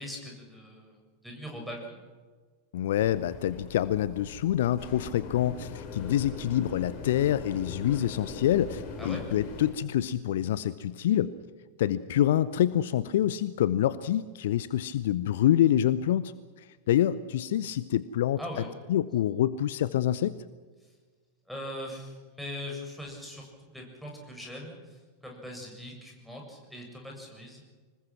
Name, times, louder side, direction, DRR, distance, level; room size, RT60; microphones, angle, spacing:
voice 1, 0.0-2.0 9.0-9.2 18.4-18.7 21.5-27.6, left 1 dB, ahead, -1 dB, 7.2 m, -41 dB
voice 2, 2.7-11.3 11.8-16.3 16.6-18.4 18.9-20.4, left 11 dB, 55° left, 16 dB, 0.7 m, -26 dB
sound 1, 3.0-9.7, left 4 dB, 40° left, 6.0 m, -41 dB
25.5 x 20.5 x 6.1 m, 1.4 s
figure-of-eight pair, 90°, 0 cm